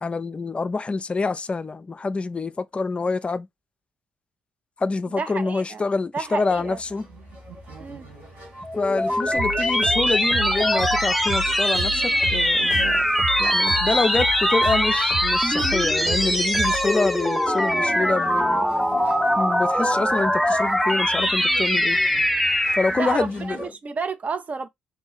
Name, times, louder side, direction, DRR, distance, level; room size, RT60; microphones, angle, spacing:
voice 1, 0.0-3.5 4.8-7.1 8.8-13.0 13.4-18.7 19.4-22.0 22.7-23.7, left 3 dB, 30° left, 0.4 m, -26 dB
voice 2, 5.2-5.9 6.1-6.8 7.8-8.1 22.9-23.3 23.6-24.7, right 5 dB, 35° right, 0.5 m, -30 dB
sound 1, 6.3-23.7, right 2 dB, 60° right, 2.3 m, -44 dB
sound 2, 8.6-23.2, equal, ahead, 0.7 m, -22 dB
sound 3, 9.3-17.0, right 2 dB, 75° right, 2.3 m, -32 dB
3.6 x 2.3 x 2.7 m
hypercardioid pair, 45°, 4 cm